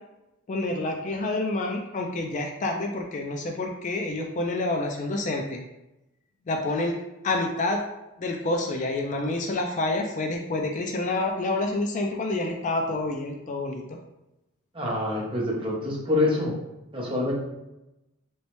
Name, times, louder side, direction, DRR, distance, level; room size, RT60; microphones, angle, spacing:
voice 1, 0.5-5.7 6.5-7.0 7.2-7.8 8.2-14.0, left 2 dB, 35° left, 3 dB, 0.3 m, -28 dB
voice 2, 14.7-16.5 16.9-17.3, left 2 dB, 25° right, -3 dB, 0.8 m, -26 dB
3.1 x 3.0 x 3.0 m, 0.94 s
head